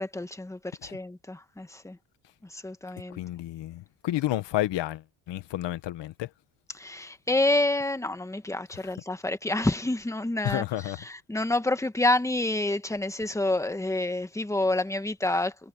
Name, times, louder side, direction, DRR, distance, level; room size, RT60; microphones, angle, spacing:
voice 1, 0.0-2.0 2.4-3.2 6.7-10.6 11.0-15.7, left 2 dB, 5° left, 1.5 m, -28 dB
voice 2, 3.1-6.3 10.4-11.0, left 14 dB, 70° left, 1.6 m, -31 dB
cardioid pair, 105°, 44 cm